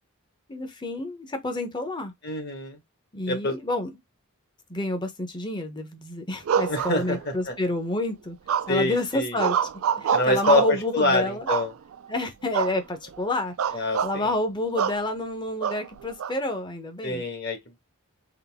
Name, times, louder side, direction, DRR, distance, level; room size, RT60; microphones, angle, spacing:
voice 1, 0.5-2.1 3.1-3.9 4.7-8.4 8.7-9.6 9.9-11.5 12.1-17.2, left 2 dB, 20° left, 0.8 m, -29 dB
voice 2, 2.2-2.8 3.3-3.5 6.7-7.5 8.7-9.4 10.1-11.7 13.7-14.3 17.0-17.8, left 2 dB, 50° left, 1.4 m, -26 dB
sound 1, 6.5-7.5 8.5-8.9 9.4-10.8 11.5-12.1 12.5-12.8 13.1-13.2 13.6-14.2 14.8-15.0 15.6-16.3, right 7 dB, 70° right, 0.4 m, -26 dB
3.9 x 2.6 x 3.5 m
head